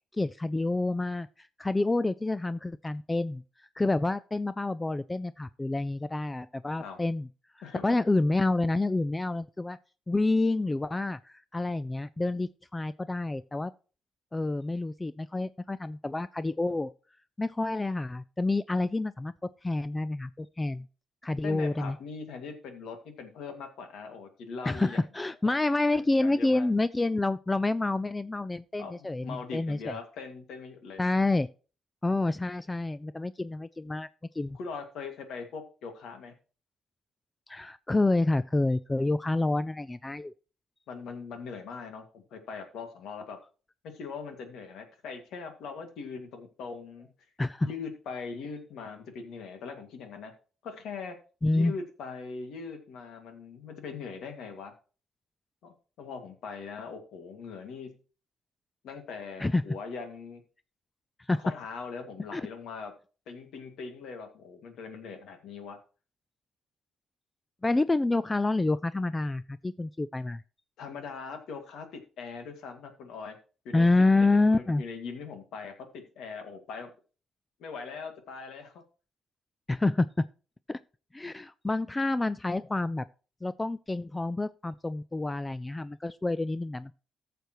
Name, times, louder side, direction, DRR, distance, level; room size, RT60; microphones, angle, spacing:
voice 1, 0.1-3.4 3.8-7.3 7.8-9.8 10.1-13.7 14.3-16.9 17.4-19.3 19.6-20.9 21.2-22.0 24.6-30.0 31.0-31.5 32.0-34.1 34.4-34.6 37.5-40.3 47.4-47.7 51.4-51.7 59.4-59.6 61.3-61.4 62.3-62.4 67.6-70.4 73.7-74.8 79.7-80.2 80.7-80.8 81.1-83.1 83.4-86.9, left 2 dB, 15° left, 0.3 m, -28 dB
voice 2, 7.6-8.0 21.4-25.0 25.9-26.7 28.8-31.0 34.5-36.3 40.9-43.4 43.8-47.1 47.6-50.3 50.6-51.2 51.5-54.7 55.6-58.0 58.8-60.4 61.4-62.9 63.3-65.8 70.8-73.4 73.6-73.9 74.1-76.9 77.6-78.8, left 5 dB, 80° left, 2.1 m, -41 dB
14.5 x 6.8 x 3.0 m
cardioid pair, 90°, 0 cm